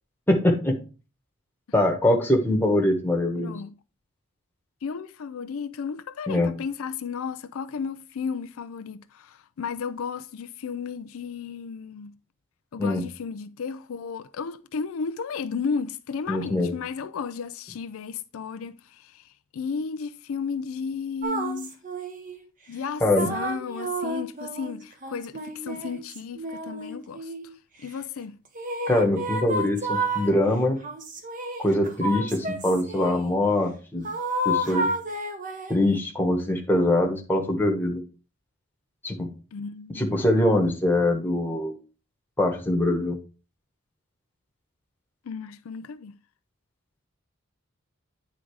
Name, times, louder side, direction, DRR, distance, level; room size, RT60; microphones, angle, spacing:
voice 1, 0.3-0.8 1.7-3.6 6.3-6.5 12.8-13.0 16.3-16.7 23.0-23.3 28.9-30.8 31.6-34.1 34.4-34.9 35.7-38.0 39.0-39.3 39.9-41.7 42.4-43.2, left 1 dB, 10° left, 1.2 m, -23 dB
voice 2, 3.4-3.7 4.8-12.1 12.7-19.2 19.5-21.8 22.7-23.0 23.3-27.3 27.8-28.4 39.5-40.2 45.3-46.1, left 5 dB, 70° left, 0.4 m, -33 dB
sound 1, 21.2-22.4 23.2-27.5 28.6-30.3 30.8-33.2 34.0-35.9, right 1 dB, 35° right, 1.1 m, -31 dB
9.2 x 3.8 x 4.6 m
head